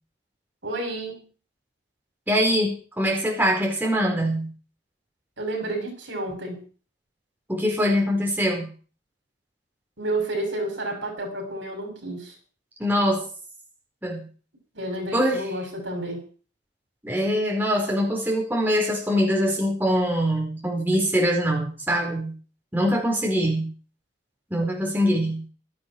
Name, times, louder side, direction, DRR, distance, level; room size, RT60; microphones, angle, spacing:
voice 1, 0.6-1.3 5.4-6.6 10.0-12.3 14.7-16.2, right 1 dB, 85° right, 3 dB, 7.0 m, -30 dB
voice 2, 2.3-4.5 7.5-8.7 12.8-13.3 14.0-14.3 15.1-15.4 17.0-22.3 22.7-23.7 24.5-25.4, equal, 10° right, -1 dB, 4.7 m, -23 dB
17.0 x 13.0 x 4.7 m, 0.39 s
head